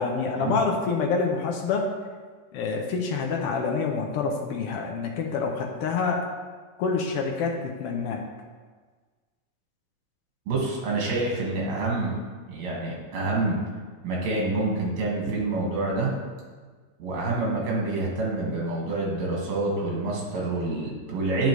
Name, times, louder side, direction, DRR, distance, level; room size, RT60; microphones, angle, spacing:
voice 1, 0.0-1.8 2.5-6.3 6.8-8.2, left 5 dB, 75° left, 2 dB, 1.4 m, -27 dB
voice 2, 10.5-12.2 12.5-13.6 14.0-16.1 17.0-21.5, right 2 dB, 65° right, -3 dB, 2.9 m, -27 dB
10.0 x 5.2 x 3.1 m, 1.4 s
omnidirectional pair, 3.3 m